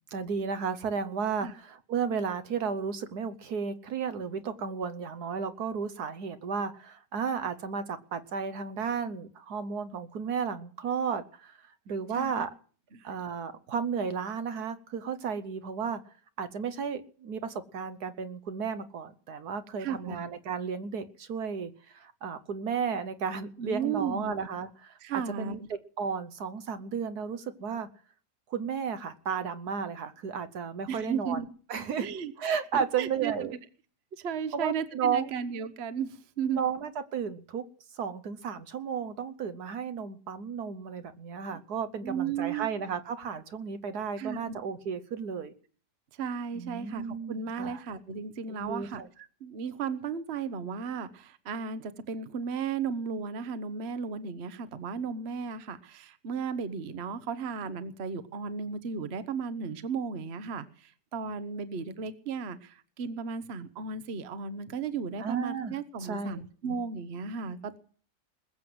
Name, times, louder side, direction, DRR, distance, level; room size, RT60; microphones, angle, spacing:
voice 1, 0.1-12.5 13.0-16.0 16.4-27.9 28.5-31.4 31.7-32.1 32.4-33.6 34.5-35.3 36.5-37.6 37.9-45.5 46.5-47.8 48.5-49.1 65.2-66.4, right 6 dB, 70° right, 12 dB, 1.5 m, -33 dB
voice 2, 12.1-12.5 12.9-13.1 19.8-20.2 23.6-24.3 25.0-25.7 30.9-31.5 32.0-32.3 32.7-33.3 34.1-36.6 42.0-42.7 44.2-44.5 46.2-49.0 49.4-67.8, right 6 dB, 45° right, 13 dB, 1.1 m, -35 dB
20.5 x 7.7 x 7.8 m, 0.43 s
omnidirectional pair, 1.8 m